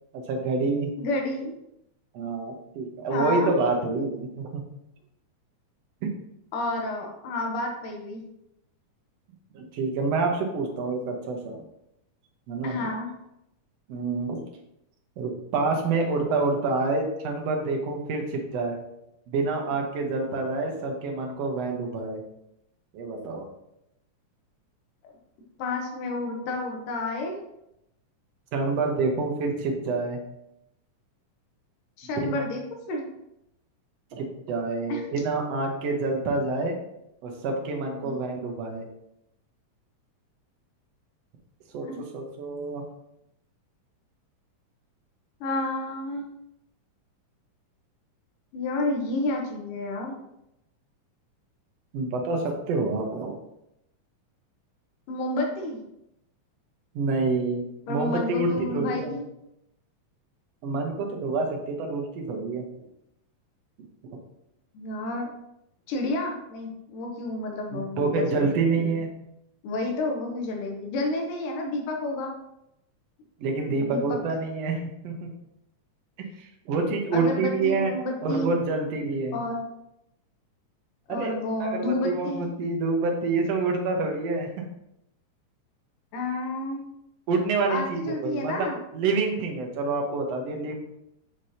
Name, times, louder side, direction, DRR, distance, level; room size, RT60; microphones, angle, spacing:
voice 1, 0.3-0.9 2.1-4.6 6.0-6.1 9.5-11.6 12.5-12.9 13.9-14.4 15.2-18.8 19.3-22.2 22.9-23.4 28.5-30.2 32.2-32.5 34.1-36.8 37.2-38.9 41.7-42.8 51.9-53.4 56.9-59.1 60.6-62.6 67.7-69.1 73.4-75.3 76.2-77.9 78.2-79.4 81.1-84.7 87.3-90.7, right 3 dB, 65° right, 2 dB, 1.8 m, -27 dB
voice 2, 1.0-1.5 3.1-3.5 6.5-8.2 12.6-13.1 25.6-27.4 32.0-32.6 32.9-33.0 34.9-35.0 38.0-38.1 41.8-42.0 45.4-46.2 48.5-50.2 55.1-55.8 57.9-59.2 64.7-65.3 65.9-68.9 69.6-72.3 73.8-74.2 77.1-78.5 79.3-79.6 81.1-82.4 86.1-86.8 87.7-88.8, left 2 dB, 85° left, 1 dB, 2.5 m, -30 dB
6.3 x 6.0 x 2.8 m, 0.83 s
omnidirectional pair, 3.7 m